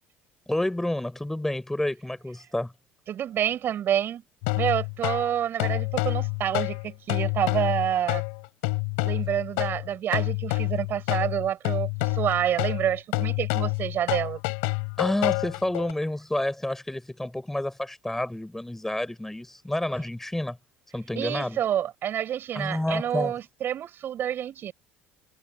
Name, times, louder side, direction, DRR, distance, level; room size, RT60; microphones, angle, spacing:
voice 1, 0.5-2.7 15.0-20.6 20.9-21.6 22.5-23.3, left 1 dB, 5° left, 5.9 m, -29 dB
voice 2, 3.1-4.2 4.6-8.2 9.0-14.4 21.1-24.7, right 10 dB, 55° right, 6.4 m, -28 dB
sound 1, 4.4-15.9, left 34 dB, 85° left, 4.6 m, -28 dB
supercardioid pair, 80°, 5 cm